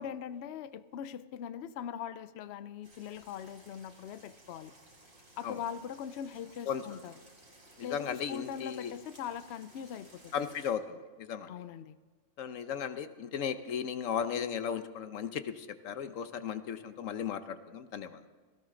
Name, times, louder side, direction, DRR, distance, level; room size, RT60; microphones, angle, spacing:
voice 1, 0.0-4.7 5.4-7.1 7.8-10.5 11.5-12.0, left 9 dB, 65° left, 14 dB, 0.8 m, -41 dB
sound 1, 2.8-10.7, right 1 dB, 90° right, 3.4 m, -58 dB
voice 2, 7.8-8.9 10.3-11.5 12.4-18.2, left 8 dB, 85° left, 11 dB, 1.2 m, -36 dB
17.5 x 16.5 x 3.8 m, 1.4 s
omnidirectional pair, 1.3 m